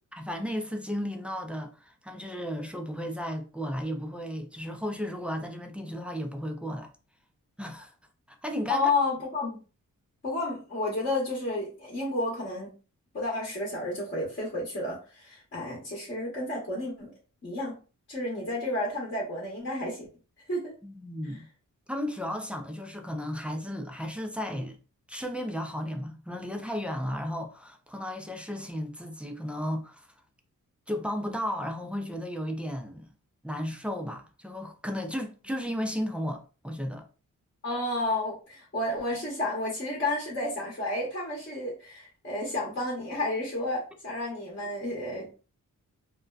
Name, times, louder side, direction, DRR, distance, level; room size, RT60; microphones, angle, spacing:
voice 1, 0.1-6.9 7.6-7.9 8.3-8.9 20.8-21.5 21.9-24.8 25.1-30.1 30.9-33.1 33.4-37.1, equal, 5° right, 0.4 m, -34 dB
voice 2, 8.7-9.6 10.2-12.7 13.1-17.1 17.4-17.8 18.1-20.1 20.5-20.7 37.6-45.4, left 2 dB, 35° left, 1.0 m, -31 dB
2.5 x 2.1 x 2.3 m
wide cardioid pair, 95°, 33 cm